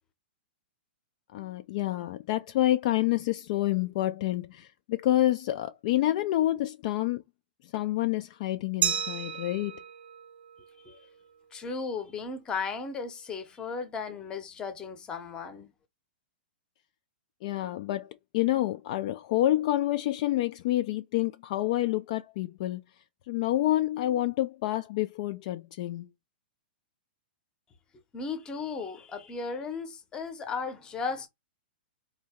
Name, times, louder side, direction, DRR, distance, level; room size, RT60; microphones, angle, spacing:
voice 1, 1.3-7.2 7.6-9.8 17.4-22.8 23.3-26.1, left 14 dB, 45° left, 0.3 m, -28 dB
Glass, 8.8-11.5, right 8 dB, 85° right, 0.5 m, -34 dB
voice 2, 11.5-15.7 28.1-31.3, left 5 dB, 15° left, 0.8 m, -35 dB
3.9 x 2.8 x 3.5 m
hypercardioid pair, 160°, 6 cm